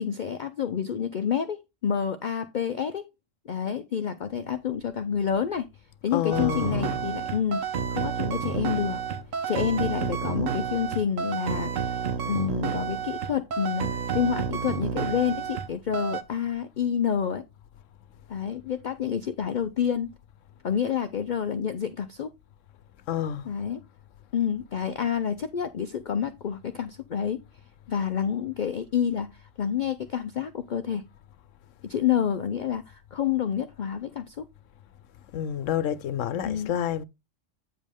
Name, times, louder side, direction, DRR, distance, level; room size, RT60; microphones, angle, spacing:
voice 1, 0.0-3.1 3.5-5.7 6.0-7.7 7.9-9.0 9.5-12.0 12.3-17.4 18.3-20.1 20.6-22.3 23.4-23.8 24.3-27.4 27.9-31.1 31.8-34.5 36.4-36.7, left 8 dB, 55° left, 0.5 m, -28 dB
voice 2, 6.1-7.0 23.1-23.5 35.3-37.0, left 10 dB, 80° left, 1.0 m, -28 dB
sound 1, 6.3-15.7 15.9-16.2, right 7 dB, 90° right, 1.3 m, -30 dB
9.0 x 5.3 x 3.5 m
omnidirectional pair, 1.3 m